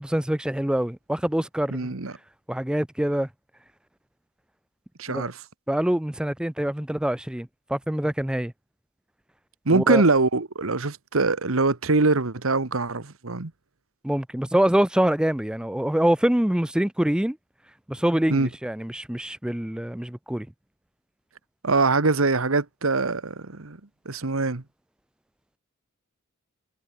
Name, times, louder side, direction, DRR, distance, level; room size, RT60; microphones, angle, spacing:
voice 1, 0.0-1.9 2.5-3.3 5.1-5.3 5.7-8.5 9.7-10.0 14.0-17.4 17.9-20.5, right 1 dB, 5° right, 0.4 m, -25 dB
voice 2, 1.7-2.1 5.0-5.4 9.6-13.5 18.3-18.5 21.6-23.8 24.0-24.6, right 3 dB, 80° right, 1.4 m, -23 dB
head